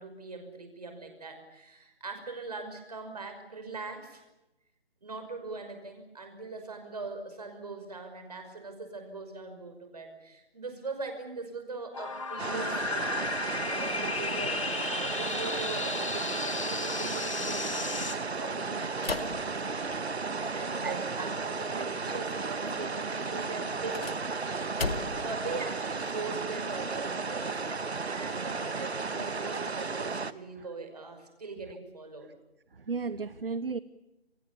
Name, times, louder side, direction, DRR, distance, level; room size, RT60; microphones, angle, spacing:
voice 1, 0.0-4.2 5.0-19.4 20.1-24.1 24.5-24.7 25.2-32.3, right 3 dB, 40° right, 6 dB, 5.8 m, -41 dB
sound 1, 11.9-18.1, left 4 dB, 30° left, 2.1 m, -34 dB
sound 2, 12.4-30.3, right 4 dB, 80° right, 1.6 m, -34 dB
sound 3, 19.0-20.4 23.7-25.4, left 3 dB, 65° left, 2.4 m, -36 dB
voice 2, 24.4-25.3 28.0-28.1 32.9-33.8, right 4 dB, 60° right, 16 dB, 1.0 m, -36 dB
29.5 x 25.0 x 7.0 m, 0.97 s
figure-of-eight pair, 180°, 32 cm